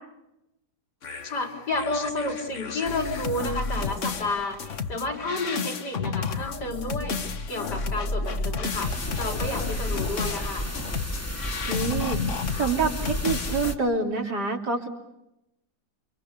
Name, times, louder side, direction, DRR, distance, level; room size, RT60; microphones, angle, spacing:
sound 1, 1.0-13.7, left 4 dB, 50° left, 1.5 m, -32 dB
voice 1, 1.3-10.7, left 2 dB, 85° left, 2 dB, 5.1 m, -31 dB
sound 2, 8.7-13.7, equal, 10° left, 1.5 m, -33 dB
voice 2, 11.7-12.2 12.6-14.9, right 4 dB, 85° right, 0 dB, 4.0 m, -26 dB
29.5 x 25.0 x 6.9 m, 0.87 s
omnidirectional pair, 1.7 m